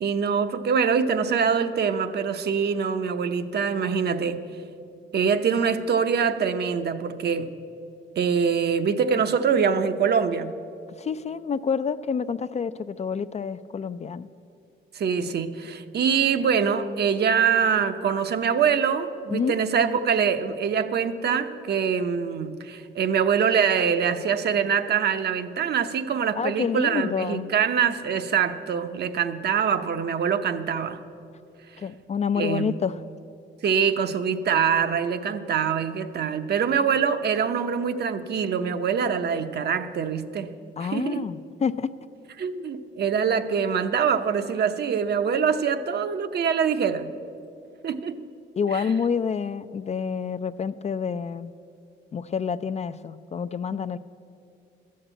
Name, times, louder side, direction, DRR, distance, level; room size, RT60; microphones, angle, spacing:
voice 1, 0.0-4.4 5.1-7.5 8.2-10.6 14.9-31.0 32.4-32.7 33.6-40.5 40.8-41.3 42.4-47.1 47.8-48.2 48.7-48.8, right 7 dB, 55° right, 9 dB, 0.8 m, -24 dB
voice 2, 11.0-14.3 19.3-19.6 26.4-27.5 31.8-33.0 40.8-41.9 48.6-51.5 52.1-54.0, left 6 dB, 35° left, 13 dB, 0.4 m, -28 dB
13.0 x 6.6 x 8.8 m, 2.5 s
cardioid pair, 90°, 20 cm